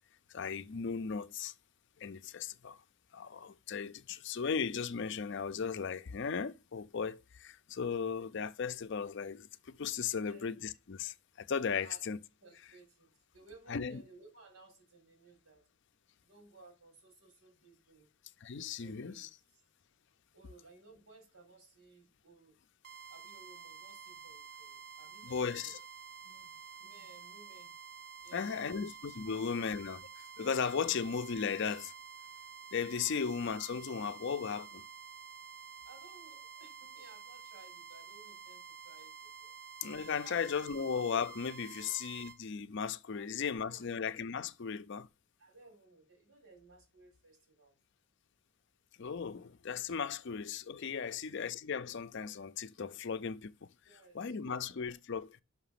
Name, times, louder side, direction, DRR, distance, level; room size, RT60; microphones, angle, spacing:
voice 1, 0.3-1.5 2.0-2.8 3.1-12.2 13.7-14.0 18.4-19.3 25.2-25.8 28.3-30.0 30.4-31.9 32.7-34.8 39.8-45.1 49.0-53.5 54.1-55.4, left 6 dB, 55° left, 0.5 m, -36 dB
voice 2, 12.4-15.6 16.2-18.1 18.8-19.6 20.3-22.6 23.1-25.8 26.2-27.7 28.2-28.8 29.2-29.6 35.8-39.5 40.2-40.8 41.7-42.0 43.1-43.9 45.4-47.8 51.0-51.3 53.8-54.6, right 3 dB, 80° right, 4.1 m, -59 dB
sound 1, 22.8-42.4, right 6 dB, 45° right, 0.5 m, -50 dB
5.9 x 5.9 x 5.7 m
head